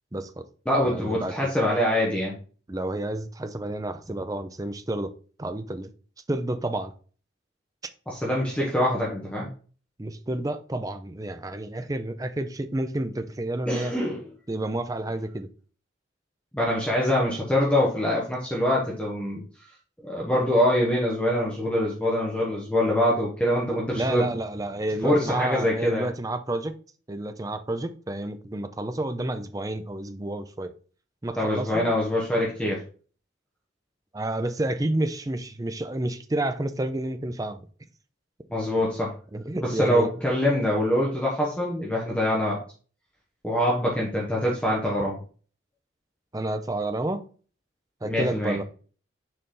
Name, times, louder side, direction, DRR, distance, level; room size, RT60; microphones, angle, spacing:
voice 1, 0.1-0.5 0.8-1.3 2.7-5.1 5.4-5.9 6.3-6.9 10.0-13.9 14.5-15.5 24.0-26.7 27.1-30.7 31.2-32.0 34.1-37.6 39.3-40.1 46.3-47.2 48.0-48.6, right 1 dB, 20° right, 0.5 m, -30 dB
voice 2, 0.7-2.3 8.1-9.5 13.6-14.3 16.5-19.4 20.0-24.2 25.0-26.1 31.4-32.8 38.5-39.1 39.6-42.6 43.4-45.2 48.0-48.6, left 1 dB, 5° left, 1.2 m, -24 dB
6.5 x 4.1 x 3.8 m
head